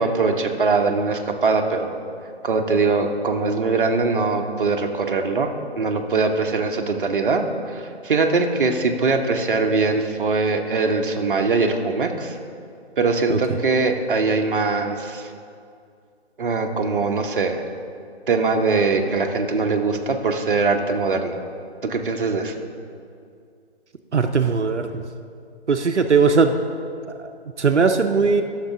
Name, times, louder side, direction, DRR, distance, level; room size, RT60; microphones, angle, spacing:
voice 1, 0.0-2.0 2.4-12.4 13.0-15.3 16.4-17.6 18.3-21.4 21.8-22.5, right 4 dB, 50° right, 4 dB, 0.8 m, -22 dB
voice 2, 24.1-25.0 25.7-26.5 27.2-27.3 27.6-28.4, right 5 dB, 90° right, 7 dB, 0.6 m, -19 dB
11.0 x 6.6 x 3.6 m, 2.3 s
figure-of-eight pair, 145°, 34 cm